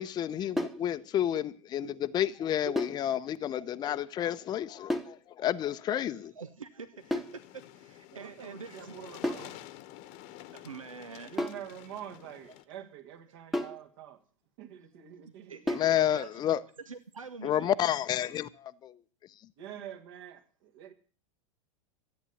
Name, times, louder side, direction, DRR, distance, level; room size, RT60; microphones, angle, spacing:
voice 1, 0.0-6.2 15.7-16.6 17.4-18.9, left 11 dB, 25° left, 0.7 m, -30 dB
sound 1, 0.6-0.9 2.8-3.1 4.9-5.2 7.1-7.4 9.2-9.5 11.4-11.7 13.5-13.9 15.7-16.0, left 1 dB, ahead, 1.2 m, -32 dB
voice 2, 5.9-9.0 10.5-11.4 15.2-16.4 16.9-17.8, right 5 dB, 80° right, 0.9 m, -45 dB
sound 2, 7.0-12.6, left 14 dB, 45° left, 1.1 m, -50 dB
voice 3, 8.1-9.7 11.2-14.2 14.6-15.7 19.6-20.9, right 10 dB, 50° right, 2.2 m, -46 dB
13.5 x 9.2 x 8.3 m
figure-of-eight pair, 85°, 17 cm